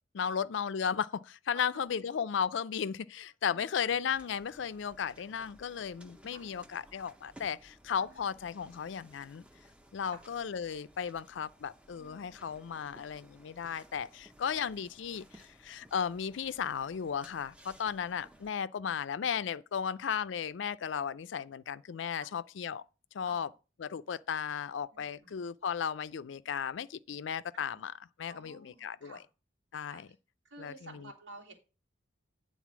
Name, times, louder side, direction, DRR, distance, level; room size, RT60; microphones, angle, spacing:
voice 1, 0.1-9.4 9.9-22.8 23.1-23.5 23.8-27.9 28.2-29.2 29.7-30.1 30.6-30.7, left 7 dB, 75° left, 0.4 m, -35 dB
voice 2, 1.5-2.1 3.5-3.8 6.3-6.4 8.0-8.3 10.0-10.3 12.0-12.5 22.2-22.3 23.2-23.5 24.9-25.3 27.5-27.8 28.3-29.2 29.9-30.0 30.4-31.5, right 2 dB, 80° right, 2.3 m, -53 dB
sound 1, 3.9-18.5, right 1 dB, 5° right, 0.5 m, -59 dB
9.3 x 4.0 x 6.0 m
head